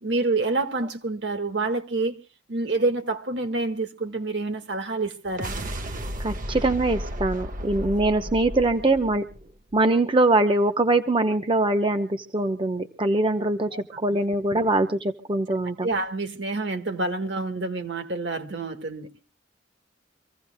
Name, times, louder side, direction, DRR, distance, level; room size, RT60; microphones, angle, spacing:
voice 1, 0.0-2.2 2.5-5.5 13.7-13.8 14.1-14.2 15.8-19.1, right 3 dB, 70° right, 1.7 m, -27 dB
sound 1, 5.2-9.8, equal, 45° right, 1.2 m, -34 dB
voice 2, 6.2-9.2 9.7-13.7 14.0-15.9, right 2 dB, 30° right, 0.9 m, -23 dB
26.0 x 16.0 x 2.2 m
head